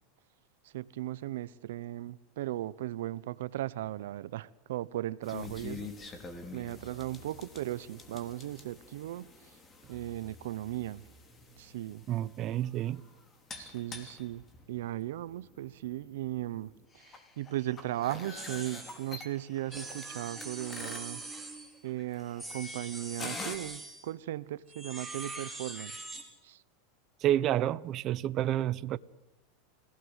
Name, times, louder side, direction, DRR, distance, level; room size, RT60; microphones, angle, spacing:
voice 1, 0.6-5.9 6.5-9.6 9.9-11.0 11.6-12.0 13.6-16.7 17.0-21.2 21.8-26.1 26.4-26.6, right 14 dB, 80° right, 0.8 m, -37 dB
sound 1, 5.2-23.6, left 3 dB, 20° left, 3.5 m, -47 dB
voice 2, 12.1-13.0 27.2-29.0, right 12 dB, 40° right, 0.8 m, -29 dB
sound 2, 18.4-19.1 19.7-21.8 22.4-24.1 24.7-26.3, right 2 dB, ahead, 4.9 m, -43 dB
28.5 x 17.0 x 8.1 m
supercardioid pair, 130°, 0 cm